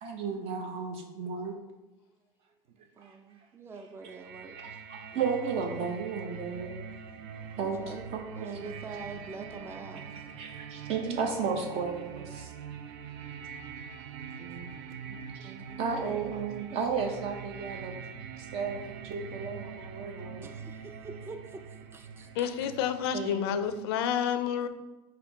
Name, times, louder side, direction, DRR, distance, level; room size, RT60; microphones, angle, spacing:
voice 1, 0.0-1.5 3.0-3.1 4.6-6.7 7.5-7.8 8.1-8.7 10.4-12.5 14.4-14.7 15.1-15.5 15.8-18.0 18.4-20.4 23.1-23.8, right 5 dB, 50° right, 3 dB, 0.8 m, -34 dB
voice 2, 3.0-4.6 7.6-10.1 13.9-14.1 14.6-14.8 15.4-16.3 18.6-18.9 20.2-22.9, right 4 dB, 20° right, 6 dB, 0.4 m, -46 dB
sound 1, 4.0-23.8, right 7 dB, 80° right, 0.4 m, -44 dB
voice 3, 22.4-24.7, left 9 dB, 85° left, 10 dB, 0.4 m, -29 dB
4.2 x 2.6 x 4.0 m, 1.1 s
supercardioid pair, 125°, 13 cm